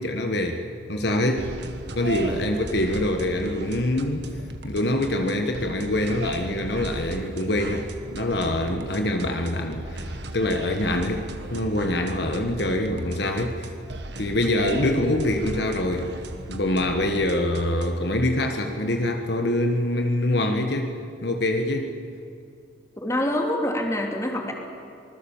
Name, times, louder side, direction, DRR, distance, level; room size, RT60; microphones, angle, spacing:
voice 1, 0.0-1.5 2.0-4.3 4.6-11.2 11.5-13.7 14.2-16.1 16.5-21.0 21.2-21.9, left 1 dB, 60° left, 4 dB, 1.4 m, -25 dB
sound 1, 1.4-18.1, right 1 dB, 65° right, 1.6 m, -37 dB
voice 2, 23.0-24.5, left 1 dB, 15° left, 1 dB, 2.7 m, -25 dB
25.5 x 20.0 x 7.3 m, 2.5 s
head